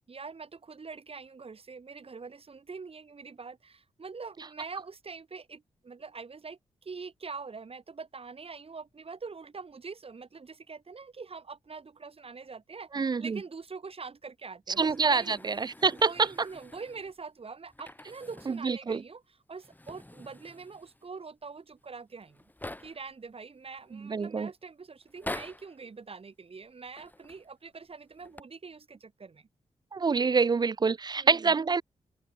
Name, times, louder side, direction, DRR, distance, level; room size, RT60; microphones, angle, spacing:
voice 1, 0.1-15.5 15.9-19.2 19.5-22.4 22.8-29.5 31.2-31.5, right 4 dB, 50° right, 2.4 m, -44 dB
voice 2, 12.9-13.4 14.8-16.3 18.5-19.0 23.9-24.5 29.9-31.8, right 5 dB, 35° right, 0.4 m, -26 dB
sound 1, 14.7-17.2 17.7-18.7 19.0-19.1 19.5-21.1 21.8-21.9 22.1-23.1 23.8-24.3 25.0-25.8 26.9-27.5 28.1-28.4, left 1 dB, 15° left, 2.1 m, -45 dB
open air
cardioid pair, 45°, 13 cm